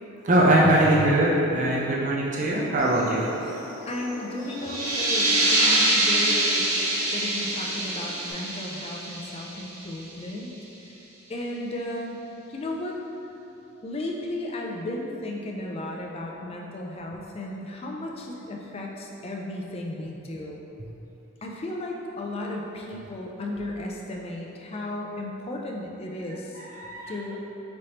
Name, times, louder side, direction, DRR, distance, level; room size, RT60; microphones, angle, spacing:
voice 1, 0.2-3.2 5.5-5.8 26.5-27.2, right 1 dB, 35° right, -5 dB, 0.4 m, -22 dB
sound 1, 2.8-8.3, left 2 dB, 15° right, 1.0 m, -40 dB
voice 2, 3.9-6.7 7.1-10.5 11.3-12.2 12.5-13.0 13.8-20.6 21.4-26.6 27.1-27.4, left 1 dB, 25° left, 0 dB, 0.3 m, -34 dB
sound 2, 4.6-10.0, right 1 dB, 75° right, 0.9 m, -25 dB
5.1 x 3.2 x 2.8 m, 3.0 s
head